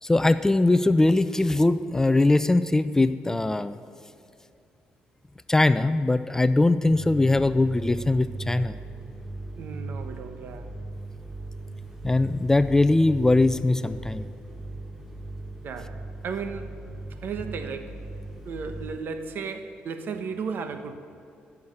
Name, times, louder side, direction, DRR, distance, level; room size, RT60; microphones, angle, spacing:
voice 1, 0.0-3.8 5.5-8.8 12.0-14.3, left 2 dB, 15° left, 13 dB, 0.4 m, -21 dB
sound 1, 6.9-19.0, right 2 dB, 10° right, 1.5 m, -38 dB
voice 2, 9.5-10.7 15.6-16.8 17.2-18.0 18.4-20.9, right 5 dB, 65° right, 8 dB, 1.1 m, -35 dB
16.5 x 7.2 x 6.6 m, 2.6 s
cardioid pair, 85°, 4 cm